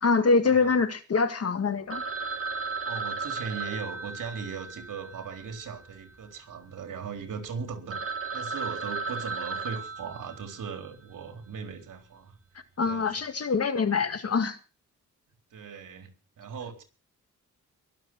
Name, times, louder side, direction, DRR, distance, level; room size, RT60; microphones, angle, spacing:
voice 1, 0.0-2.0 12.8-14.6, left 4 dB, 50° left, 1.9 m, -24 dB
Telephone, 1.9-6.3 6.5-6.6 7.2-7.3 7.6-7.7 7.9-10.9, right 4 dB, 45° right, 1.6 m, -35 dB
voice 2, 2.8-12.3 12.8-13.1 15.5-16.1 16.4-16.8, right 6 dB, 75° right, 3.9 m, -38 dB
22.5 x 7.6 x 6.2 m
cardioid pair, 95°, 32 cm